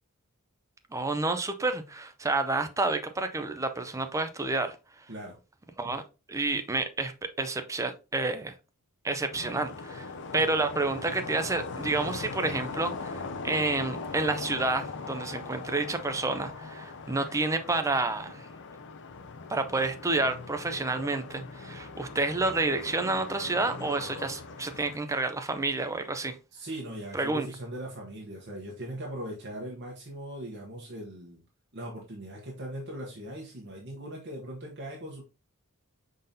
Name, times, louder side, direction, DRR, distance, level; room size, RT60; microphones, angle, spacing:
voice 1, 0.9-4.8 5.8-6.0 6.3-8.5 9.0-18.4 19.5-26.4 27.1-27.5, right 3 dB, 15° right, 0.5 m, -29 dB
sound 1, 9.3-25.0, left 4 dB, 55° left, 0.5 m, -40 dB
voice 2, 26.5-31.4 31.7-35.2, right 1 dB, 55° right, 1.0 m, -40 dB
5.2 x 3.8 x 2.7 m
head